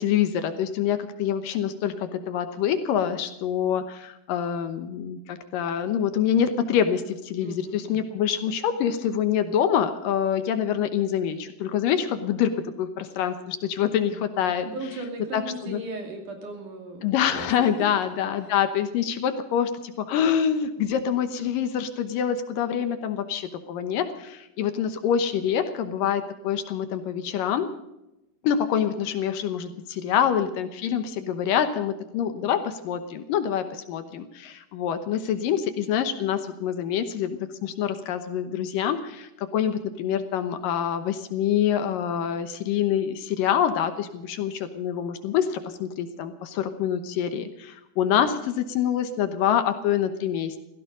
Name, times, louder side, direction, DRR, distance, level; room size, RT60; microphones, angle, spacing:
voice 1, 0.0-14.7 15.3-15.8 17.0-27.7 28.4-50.6, left 9 dB, 70° left, 9 dB, 2.5 m, -26 dB
voice 2, 7.4-8.1 14.0-14.3 14.7-17.7 32.3-32.6, right 2 dB, 55° right, 3 dB, 4.0 m, -37 dB
16.5 x 15.5 x 5.2 m, 0.92 s
omnidirectional pair, 4.3 m